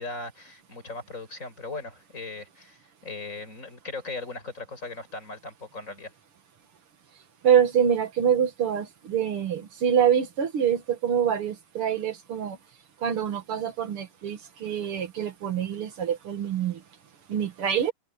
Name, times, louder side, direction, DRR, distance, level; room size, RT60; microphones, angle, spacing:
voice 1, 0.0-6.1, left 3 dB, 35° left, 6.4 m, -38 dB
voice 2, 7.4-12.6 13.0-16.8 17.3-17.9, right 8 dB, 85° right, 2.7 m, -25 dB
omnidirectional pair, 2.4 m